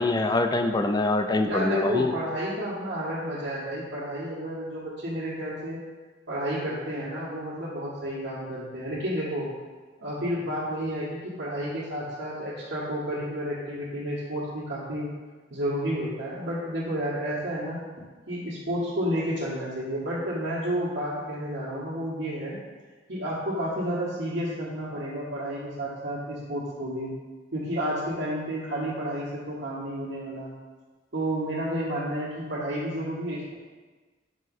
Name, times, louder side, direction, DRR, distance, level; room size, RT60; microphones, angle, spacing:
voice 1, 0.0-2.1, left 2 dB, 20° left, 7 dB, 0.4 m, -24 dB
voice 2, 1.4-5.8 6.3-9.5 10.0-15.1 15.5-17.8 18.3-22.6 23.1-27.1 27.5-30.5 31.1-33.5, equal, 65° right, -10 dB, 1.5 m, -31 dB
7.6 x 3.1 x 5.3 m, 1.3 s
head